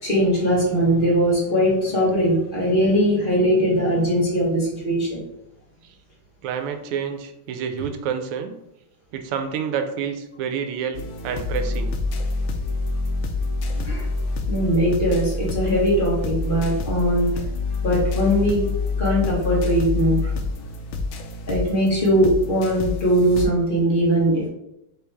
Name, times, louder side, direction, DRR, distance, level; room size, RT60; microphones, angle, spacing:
voice 1, 0.0-5.2 13.8-14.1 14.5-17.3 17.8-18.7 19.0-20.3 21.5-24.5, equal, 30° left, -5 dB, 1.2 m, -20 dB
voice 2, 6.4-8.6 9.1-12.0, right 7 dB, 85° right, 7 dB, 1.5 m, -28 dB
sound 1, 10.9-23.5, left 3 dB, 75° left, 1.3 m, -27 dB
4.5 x 3.2 x 3.4 m, 0.85 s
omnidirectional pair, 2.4 m